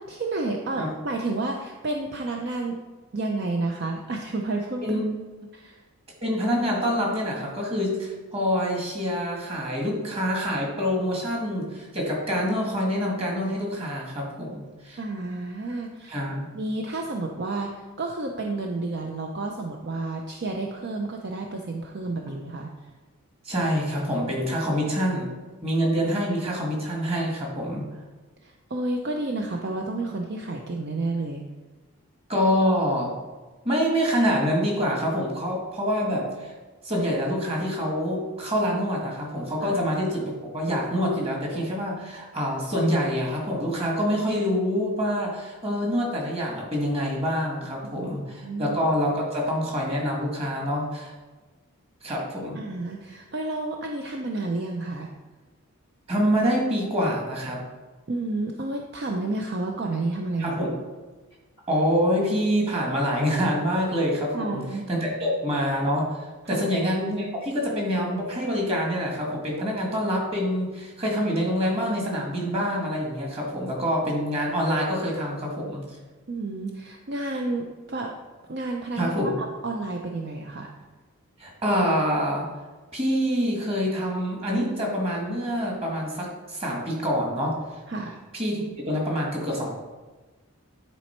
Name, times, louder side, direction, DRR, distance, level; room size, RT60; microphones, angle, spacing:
voice 1, 0.0-2.8 3.1-5.0 5.5-5.8 15.0-16.2 16.5-22.7 28.4-31.5 39.6-39.7 47.9-48.1 48.4-48.8 52.6-55.1 58.1-60.6 64.3-64.9 66.5-66.7 76.3-78.1 78.5-79.1 79.6-80.7 87.9-88.2, right 2 dB, 50° right, 2 dB, 0.5 m, -30 dB
voice 2, 6.2-15.0 16.1-16.5 23.4-25.3 25.6-27.9 32.3-33.1 33.6-36.5 36.8-51.1 52.0-52.6 56.1-57.6 60.4-60.7 61.7-64.6 64.9-75.8 79.0-79.3 81.4-82.5 82.9-87.6 88.3-89.7, equal, 25° right, -1 dB, 1.8 m, -26 dB
10.0 x 4.2 x 4.4 m, 1.3 s
head